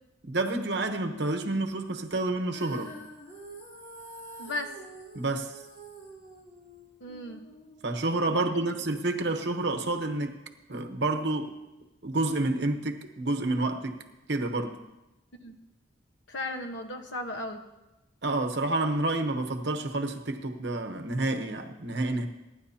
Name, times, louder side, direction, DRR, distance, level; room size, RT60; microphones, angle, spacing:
voice 1, 0.3-3.0 5.1-5.6 7.8-10.4 10.7-11.5 12.0-14.0 14.3-14.8 18.2-22.3, right 2 dB, 60° right, 1.0 m, -29 dB
Female singing, 2.5-8.7, right 1 dB, 35° left, 2.7 m, -47 dB
voice 2, 4.4-4.7 7.0-7.4 8.3-8.6 15.4-15.6 16.3-17.6, left 1 dB, 70° left, 1.2 m, -36 dB
22.5 x 10.0 x 2.8 m
head